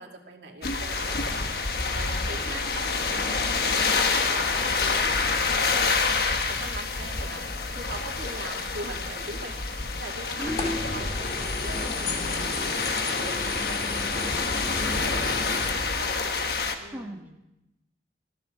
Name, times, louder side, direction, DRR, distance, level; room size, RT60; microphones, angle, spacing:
voice 1, 0.0-1.6 1.9-7.4 7.7-13.7 14.2-16.3 16.8-17.4, right 2 dB, 85° right, 1 dB, 2.4 m, -42 dB
sound 1, 0.6-16.7, left 4 dB, 60° left, 1.3 m, -27 dB
sound 2, 10.4-15.7, left 2 dB, 35° left, 2.0 m, -34 dB
voice 2, 10.4-11.0 14.9-15.6 16.9-17.2, equal, 10° right, 0 dB, 1.3 m, -36 dB
21.5 x 14.5 x 3.9 m, 0.88 s
head